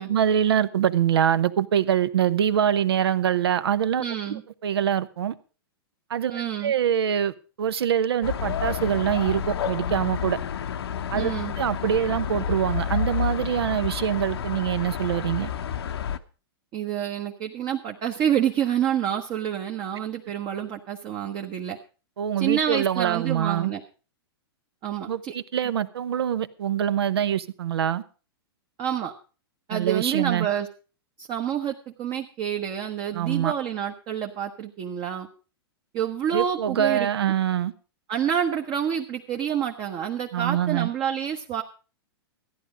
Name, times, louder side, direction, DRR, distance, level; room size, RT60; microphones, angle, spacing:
voice 1, 0.1-4.0 4.3-5.3 6.1-10.4 11.1-11.3 11.6-15.5 22.2-23.7 25.1-28.0 29.7-30.5 33.1-33.5 36.3-37.7 40.3-40.9, right 9 dB, 75° right, 14 dB, 0.9 m, -24 dB
voice 2, 4.0-4.4 6.3-6.7 11.1-11.5 16.7-21.8 22.4-23.8 24.8-25.3 28.8-29.1 29.7-30.7 31.2-35.3 35.9-37.4 38.1-41.6, right 9 dB, 35° right, 3 dB, 1.1 m, -28 dB
sound 1, 8.2-16.2, left 8 dB, 75° left, 0.9 m, -30 dB
14.0 x 10.5 x 5.0 m, 0.36 s
hypercardioid pair, 115°, 13 cm